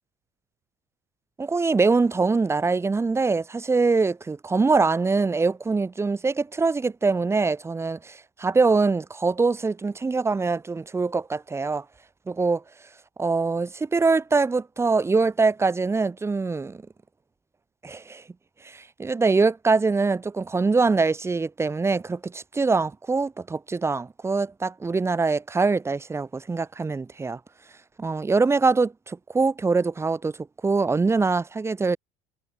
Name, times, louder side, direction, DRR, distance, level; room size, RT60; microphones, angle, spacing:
voice 1, 1.4-11.8 12.3-12.6 13.2-16.8 17.8-18.2 18.6-27.4 28.0-32.0, right 4 dB, 15° right, 6.0 m, -23 dB
supercardioid pair, 125°, 16 cm